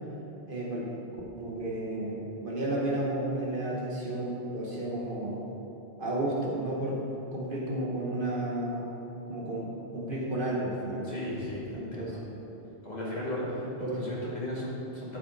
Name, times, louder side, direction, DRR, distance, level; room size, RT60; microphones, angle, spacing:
voice 1, 0.5-0.9 1.4-5.4 6.0-7.0 7.3-8.9 9.3-11.1 11.7-12.1 13.8-13.9, right 1 dB, 55° right, -4 dB, 1.5 m, -32 dB
voice 2, 11.0-12.2 12.8-15.2, left 1 dB, 40° left, -7 dB, 2.2 m, -35 dB
11.5 x 5.1 x 4.8 m, 2.9 s
omnidirectional pair, 1.1 m